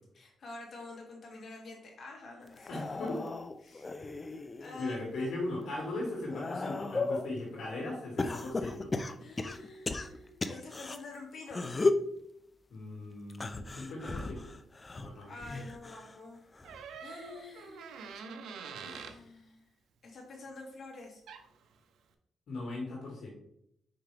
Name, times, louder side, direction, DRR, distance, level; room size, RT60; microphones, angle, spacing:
voice 1, 0.1-2.8 3.6-4.1 4.6-5.3 9.2-11.6 15.3-16.4 17.0-17.9 18.8-19.7 20.0-21.2, left 3 dB, 50° left, 0 dB, 2.2 m, -47 dB
sound 1, 2.5-4.9 5.4-7.3 8.2-11.0 11.5-12.1 13.3-16.2 16.5-17.0 18.1-18.2, left 3 dB, 25° left, 0.4 m, -35 dB
voice 2, 2.7-3.2 4.8-8.9 12.7-14.5 15.0-15.3 22.5-23.3, left 2 dB, 70° left, -3 dB, 2.1 m, -38 dB
Door, 16.6-19.2 21.0-21.1 21.3-21.6, right 5 dB, 90° right, 0.7 m, -45 dB
5.9 x 5.0 x 3.4 m, 0.74 s
cardioid pair, 115°, 0 cm